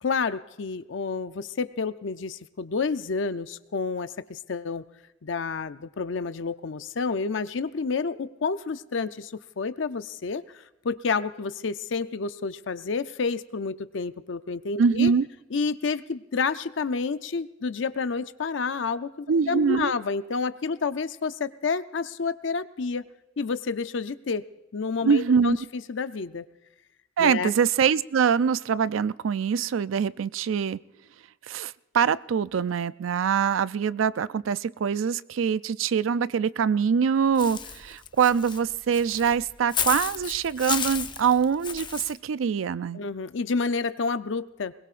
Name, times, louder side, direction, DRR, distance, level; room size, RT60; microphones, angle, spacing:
voice 1, 0.0-4.8 5.2-10.4 10.8-15.1 15.5-23.0 23.4-24.4 24.7-26.5 27.2-27.5 42.9-44.7, left 4 dB, 70° left, 12 dB, 0.6 m, -29 dB
voice 2, 14.8-15.3 19.3-19.9 25.0-25.6 27.2-30.8 31.5-43.0, right 6 dB, 85° right, 17 dB, 0.4 m, -24 dB
Walk footsteps / Bird, 37.4-42.1, left 7 dB, 25° left, 0.6 m, -32 dB
21.5 x 20.5 x 2.5 m, 1.0 s
head